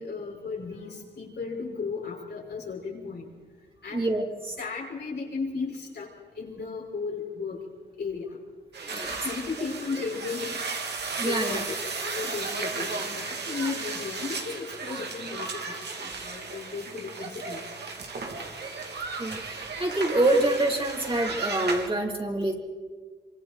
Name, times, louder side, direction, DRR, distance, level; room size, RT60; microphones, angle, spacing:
voice 1, 0.0-3.3 3.8-4.1 4.6-6.1 6.4-7.6 8.0-8.4 9.2-10.6 11.2-11.7 12.0-17.6, left 4 dB, 65° left, -2 dB, 6.6 m, -35 dB
voice 2, 3.9-4.5 8.9-9.2 11.2-11.6 18.6-18.8 19.2-22.5, right 2 dB, 30° right, -1 dB, 4.3 m, -26 dB
sound 1, 8.7-21.9, right 4 dB, 65° right, 3.4 m, -35 dB
26.0 x 25.0 x 4.7 m, 1.5 s
cardioid pair, 55°, 19 cm